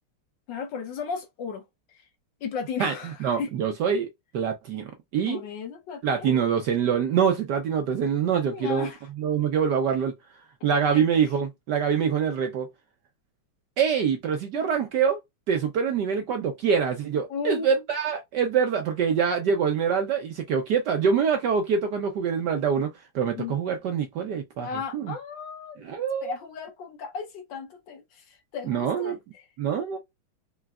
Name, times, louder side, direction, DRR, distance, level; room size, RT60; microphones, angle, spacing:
voice 1, 0.5-2.0 2.4-3.5 3.8-3.9 5.3-6.4 8.5-9.0 10.9-11.0 14.5-14.6 17.3-17.8 23.4-23.6 24.6-25.8 26.2-29.5, left 6 dB, 65° left, 1.3 m, -35 dB
voice 2, 3.2-4.1 4.3-5.4 6.0-8.9 9.2-10.1 10.6-12.7 13.8-15.2 15.5-22.9 23.1-25.1 25.8-26.3 28.7-29.1 29.6-30.0, right 7 dB, 65° right, 1.1 m, -25 dB
4.8 x 3.2 x 2.3 m
omnidirectional pair, 2.4 m